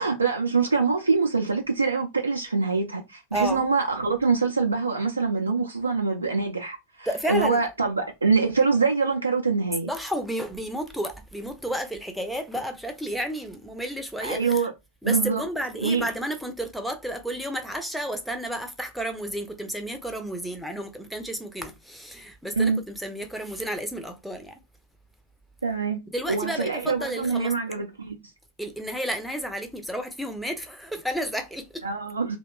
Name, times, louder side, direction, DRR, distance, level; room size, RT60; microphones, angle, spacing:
voice 1, 0.0-9.9 14.2-14.7 15.0-15.4 15.8-16.1 22.5-22.8 25.6-28.2 31.8-32.4, right 4 dB, 80° right, 0.4 m, -24 dB
voice 2, 7.1-7.6 9.9-14.4 15.0-24.5 26.1-27.5 28.6-31.8, equal, ahead, 0.5 m, -31 dB
2.8 x 2.1 x 2.3 m
figure-of-eight pair, 90°, 0 cm